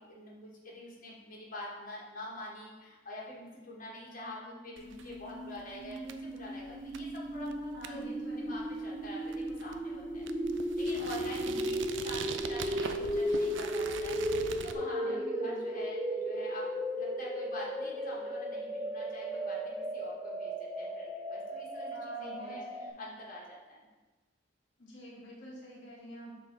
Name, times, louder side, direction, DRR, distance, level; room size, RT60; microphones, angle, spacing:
voice 1, 0.0-8.0 8.4-10.3 10.8-16.7 16.9-23.9, left 1 dB, 45° left, -5 dB, 1.5 m, -46 dB
sound 1, 3.8-22.9, equal, 10° right, 0.4 m, -36 dB
sound 2, 4.8-14.7, right 6 dB, 85° right, 0.4 m, -44 dB
voice 2, 7.7-8.6 11.4-11.7 14.8-15.6 21.9-23.0 24.8-26.4, equal, 75° left, -5 dB, 1.4 m, -47 dB
7.6 x 3.2 x 3.9 m, 1.2 s
head